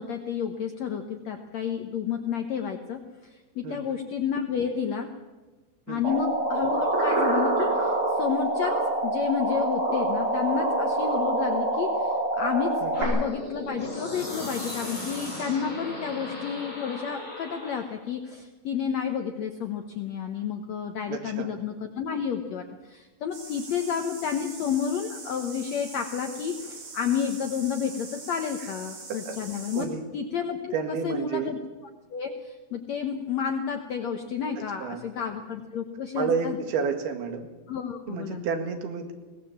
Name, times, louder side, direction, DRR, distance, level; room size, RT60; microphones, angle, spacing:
voice 1, 0.0-5.1 5.9-29.8 30.1-30.8 31.0-31.6 32.1-36.6 37.7-38.5, left 7 dB, 70° left, 5 dB, 1.6 m, -31 dB
voice 2, 3.6-4.0 5.9-6.2 12.8-13.2 21.1-21.5 29.3-29.4 29.7-30.0 30.7-31.5 34.6-35.0 36.2-37.5 38.1-39.1, right 6 dB, 75° right, 6 dB, 3.8 m, -31 dB
sound 1, 6.0-13.0, right 2 dB, 30° right, 5.7 m, -26 dB
sound 2, 12.9-18.0, left 1 dB, 10° left, 5.8 m, -37 dB
sound 3, 23.3-29.9, right 4 dB, 60° right, 5.5 m, -42 dB
22.0 x 18.0 x 7.3 m, 1.2 s
omnidirectional pair, 4.6 m